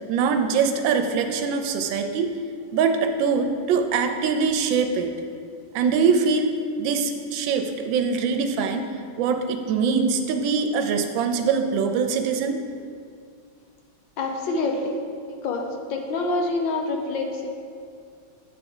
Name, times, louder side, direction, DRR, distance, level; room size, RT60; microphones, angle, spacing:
voice 1, 0.1-2.3 2.7-5.2 5.7-6.5 6.8-8.9 9.2-12.6, right 5 dB, 85° right, 6 dB, 1.3 m, -23 dB
voice 2, 14.2-14.9 15.4-17.5, left 3 dB, 80° left, 2 dB, 1.5 m, -26 dB
8.7 x 3.5 x 5.4 m, 2.3 s
omnidirectional pair, 2.0 m